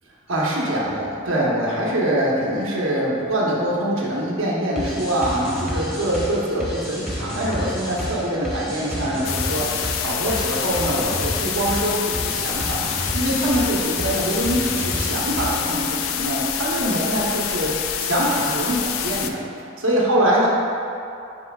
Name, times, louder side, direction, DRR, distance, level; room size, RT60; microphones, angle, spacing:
voice 1, 0.3-19.4 19.8-20.5, right 1 dB, 75° right, -4 dB, 1.0 m, -24 dB
sound 1, 4.8-15.8, equal, ahead, 1.1 m, -30 dB
sound 2, 9.2-19.3, left 9 dB, 85° left, 0.4 m, -27 dB
9.6 x 4.4 x 2.3 m, 2.7 s
head